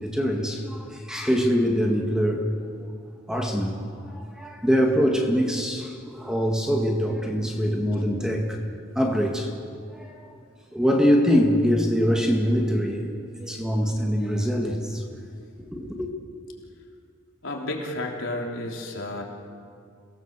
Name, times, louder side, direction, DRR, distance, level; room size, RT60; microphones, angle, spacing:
voice 1, 0.0-2.5 3.3-3.8 4.2-8.6 9.0-9.5 9.9-10.3 10.7-13.1 13.4-15.1 15.7-16.1, equal, 5° right, 1 dB, 1.9 m, -23 dB
voice 2, 17.4-19.2, left 1 dB, 70° left, 0 dB, 3.5 m, -31 dB
28.5 x 18.0 x 7.5 m, 2.4 s
head